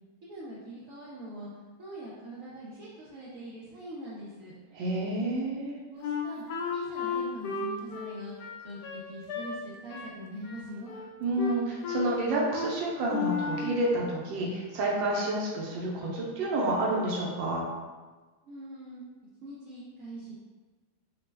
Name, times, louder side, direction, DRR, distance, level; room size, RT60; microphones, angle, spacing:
voice 1, 0.2-1.5 1.8-4.5 5.9-6.4 6.7-8.3 8.6-10.9 18.4-19.0 19.4-20.3, equal, 65° right, -8 dB, 0.8 m, -43 dB
voice 2, 4.7-5.7 11.2-17.6, right 1 dB, 85° right, -3 dB, 1.4 m, -29 dB
Wind instrument woodwind instrument, 6.0-9.5 9.9-10.2 10.4-11.1 11.4-12.1 12.5-12.7 13.1-13.8, left 5 dB, 70° left, 1.0 m, -34 dB
4.1 x 2.1 x 3.2 m, 1.3 s
omnidirectional pair, 2.0 m